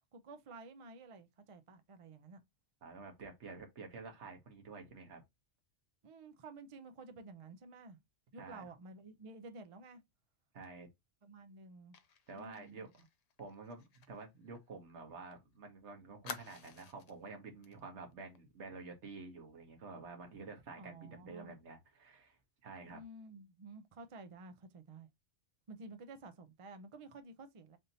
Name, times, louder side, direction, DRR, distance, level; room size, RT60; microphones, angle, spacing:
voice 1, 0.1-2.4 6.0-8.0 8.3-10.0 11.2-12.0 12.3-12.9 20.8-21.5 22.9-25.1 25.7-27.8, right 3 dB, 45° right, 0.4 m, -52 dB
voice 2, 2.8-5.2 8.4-8.7 10.5-10.9 12.3-13.1 13.4-23.0, right 4 dB, 70° right, 1.3 m, -50 dB
Fire, 11.9-15.4 15.6-15.7 16.2-17.2 17.6-17.8 18.1-18.4, left 7 dB, 70° left, 0.3 m, -51 dB
3.5 x 2.7 x 3.9 m
omnidirectional pair, 1.2 m